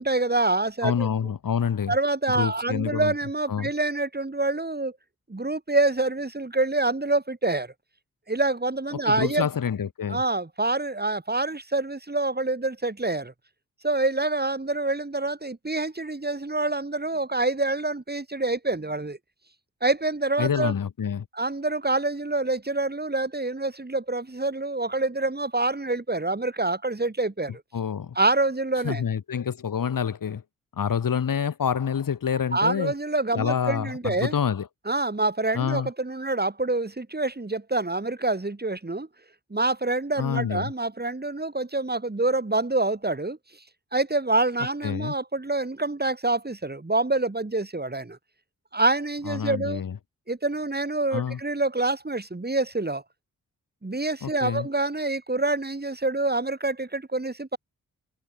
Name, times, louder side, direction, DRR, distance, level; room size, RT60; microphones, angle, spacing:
voice 1, 0.0-1.1 1.9-4.9 5.3-7.7 8.3-9.5 10.1-13.3 13.8-19.2 19.8-20.7 21.3-27.6 28.2-29.0 32.5-34.3 34.9-39.1 39.5-43.4 43.9-48.2 48.7-49.8 50.3-53.0 53.8-57.6, right 2 dB, 30° right, 5.4 m, -26 dB
voice 2, 0.8-2.0 2.3-3.1 3.5-3.7 8.9-10.2 20.4-21.3 27.7-28.2 28.8-30.4 30.7-32.9 33.3-34.7 35.5-35.9 40.2-40.7 44.8-45.1 49.2-50.0 51.1-51.4 54.2-54.7, left 7 dB, 70° left, 2.7 m, -27 dB
supercardioid pair, 40°, 34 cm